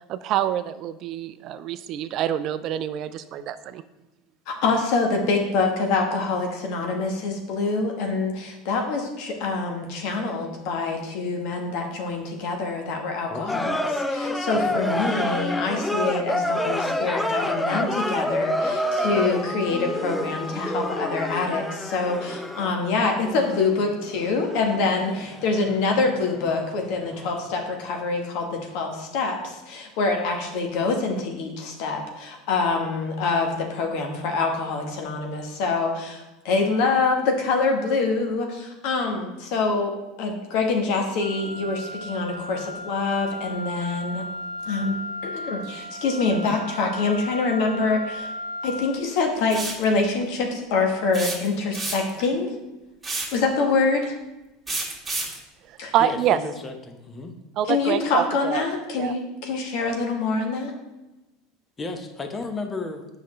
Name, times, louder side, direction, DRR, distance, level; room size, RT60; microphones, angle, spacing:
voice 1, 0.1-3.8 55.9-56.4 57.6-58.7 59.0-59.1, right 10 dB, 55° right, 13 dB, 0.4 m, -26 dB
voice 2, 4.5-13.8 14.1-44.3 44.6-45.0 45.2-48.3 48.6-52.5 53.3-54.1 55.8-55.9 57.7-60.7, left 3 dB, 65° left, 3 dB, 1.3 m, -25 dB
voice 3, 13.3-13.7 14.5-15.0 56.0-57.3 61.8-63.1, left 3 dB, 25° left, 6 dB, 0.9 m, -33 dB
sound 1, 13.5-26.9 27.1-27.3, left 1 dB, 10° left, 0.5 m, -28 dB
Wind instrument woodwind instrument, 41.2-49.0, left 1 dB, 90° left, 1.2 m, -35 dB
sound 2, 49.5-49.8 51.1-52.2 53.0-53.4 54.7-55.4, right 3 dB, 15° right, 1.8 m, -29 dB
7.5 x 5.6 x 3.2 m, 1.0 s
hypercardioid pair, 90°, 0 cm